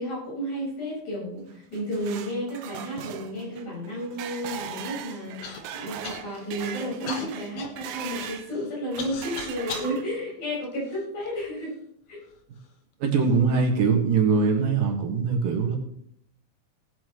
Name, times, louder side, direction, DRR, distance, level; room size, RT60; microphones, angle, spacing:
voice 1, 0.0-11.8 12.1-12.2, equal, 50° left, -5 dB, 6.5 m, -32 dB
sound 1, 1.5-8.5 8.9-10.3, right 9 dB, 90° right, 1.5 m, -39 dB
Human voice / Cough, 5.4-5.6 6.0-6.5 7.1-9.9 10.6-11.5 12.2-12.3 13.0-13.4, left 5 dB, 65° left, 1.5 m, -38 dB
voice 2, 13.0-15.8, right 5 dB, 75° right, 2 dB, 3.2 m, -22 dB
18.0 x 8.6 x 3.1 m, 0.68 s
omnidirectional pair, 4.1 m